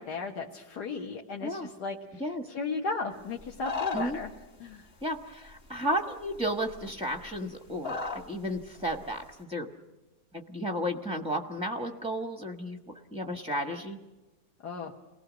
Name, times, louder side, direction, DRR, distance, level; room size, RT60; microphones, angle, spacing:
voice 1, 0.0-4.3 4.6-4.9 14.6-14.9, left 4 dB, 60° left, 1 dB, 2.0 m, -35 dB
sound 1, 3.4-4.3 5.5-5.6 6.3-6.4 6.7-7.4 7.8-8.3 8.6-9.1, left 4 dB, 35° left, 1.7 m, -35 dB
voice 2, 5.0-9.7 10.3-12.8 13.1-14.0, equal, 5° right, 6 dB, 0.7 m, -33 dB
29.0 x 19.5 x 6.2 m, 1.1 s
omnidirectional pair, 2.1 m